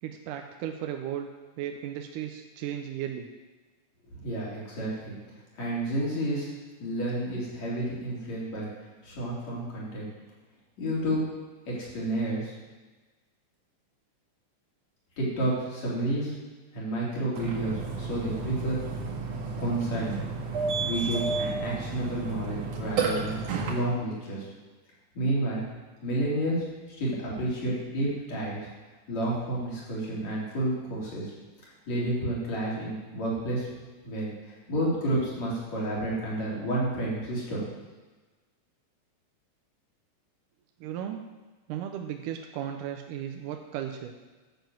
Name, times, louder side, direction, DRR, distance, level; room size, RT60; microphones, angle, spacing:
voice 1, 0.0-1.3 1.6-3.3 40.8-41.2 41.7-44.1, right 10 dB, 90° right, 5 dB, 2.3 m, -35 dB
voice 2, 4.1-5.2 5.5-6.5 6.8-8.7 9.0-10.1 10.8-11.2 11.7-12.5 15.2-16.4 16.7-18.8 19.6-20.2 20.8-23.4 23.7-24.5 25.1-25.6 26.0-26.6 26.9-28.6 29.1-31.3 31.9-33.7 34.0-37.6, right 1 dB, 60° left, -6 dB, 4.7 m, -30 dB
Burping eructation, 17.4-23.7, right 4 dB, 70° right, 3.3 m, -31 dB
11.5 x 7.0 x 7.8 m, 1.3 s
omnidirectional pair, 3.6 m